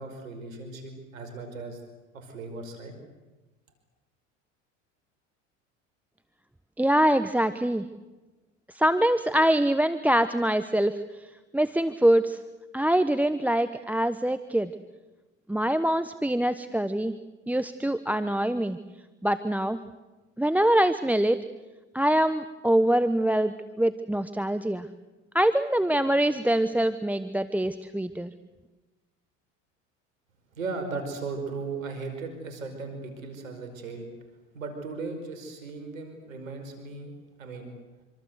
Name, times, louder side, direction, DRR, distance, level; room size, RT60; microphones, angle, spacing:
voice 1, 0.0-1.8 2.1-2.9 30.6-34.1 34.5-37.1 37.4-37.7, right 3 dB, 90° right, 6 dB, 5.4 m, -37 dB
voice 2, 6.8-7.8 8.7-11.0 11.5-12.4 12.7-14.7 15.5-17.1 17.5-18.8 19.2-19.8 20.4-21.4 21.9-24.9 25.3-28.3, right 1 dB, 5° right, 12 dB, 1.0 m, -24 dB
26.5 x 25.0 x 8.1 m, 1.1 s
hypercardioid pair, 80°, 39 cm